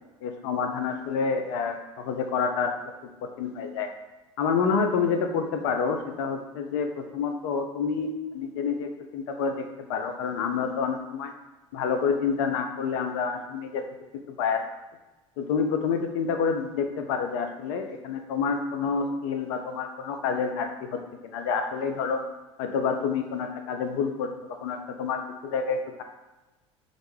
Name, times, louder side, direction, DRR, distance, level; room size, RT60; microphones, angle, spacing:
voice 1, 0.2-2.7 3.4-3.9 4.4-9.6 9.9-11.3 11.7-13.8 14.3-14.6 15.4-22.2 22.6-24.3 24.6-26.0, left 5 dB, 65° left, 5 dB, 0.4 m, -28 dB
2.5 x 2.1 x 3.2 m, 1.1 s
hypercardioid pair, 75°, 16 cm